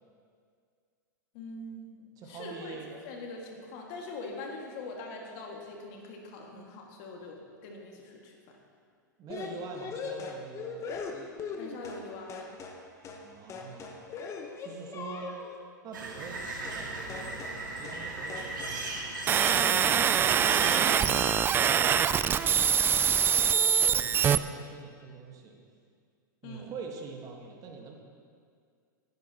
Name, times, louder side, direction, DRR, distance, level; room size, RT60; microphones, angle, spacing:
voice 1, 1.3-2.8 3.0-8.6 11.6-12.6 19.5-19.9 26.4-26.7, left 2 dB, 50° left, 0 dB, 2.1 m, -43 dB
voice 2, 2.2-2.9 9.2-11.0 13.1-14.1 14.6-15.4 15.8-18.8 20.4-25.6 26.4-27.9, right 4 dB, 35° right, 1 dB, 1.6 m, -44 dB
sound 1, 9.3-12.0 12.3-12.8 13.0-13.2 13.5-15.6 16.6-16.8 17.1-17.6 17.8-18.0 18.3-18.8, left 5 dB, 30° left, 1.2 m, -40 dB
sound 2, 15.9-21.3, right 2 dB, 75° right, 2.2 m, -37 dB
sound 3, 19.3-24.4, right 8 dB, 20° right, 0.3 m, -24 dB
18.5 x 9.6 x 3.0 m, 2.1 s
hypercardioid pair, 100°, 11 cm